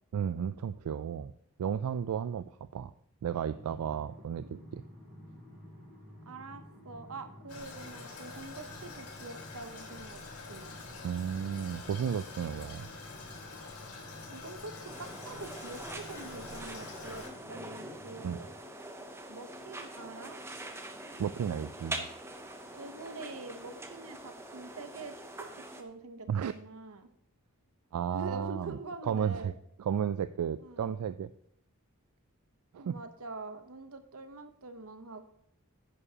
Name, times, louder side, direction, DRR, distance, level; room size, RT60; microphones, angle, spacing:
voice 1, 0.1-1.3 1.6-2.9 3.2-4.8 11.0-12.9 18.2-18.4 21.2-22.0 26.3-26.5 27.9-28.8 29.1-29.5 29.8-31.3 32.7-33.0, right 8 dB, 90° right, 13 dB, 0.3 m, -33 dB
sound 1, 3.5-18.5, equal, 55° right, 2.7 m, -51 dB
voice 2, 6.3-10.2 10.5-10.8 14.3-18.5 19.3-20.4 22.7-25.2 25.5-27.1 28.1-29.5 30.6-30.9 32.8-35.3, right 3 dB, 75° right, 9 dB, 0.9 m, -45 dB
Toilet flush, 7.5-17.3, left 4 dB, 85° left, 1.7 m, -47 dB
sound 2, 14.8-25.8, right 1 dB, 10° right, 0.6 m, -44 dB
9.8 x 9.8 x 2.9 m, 0.73 s
head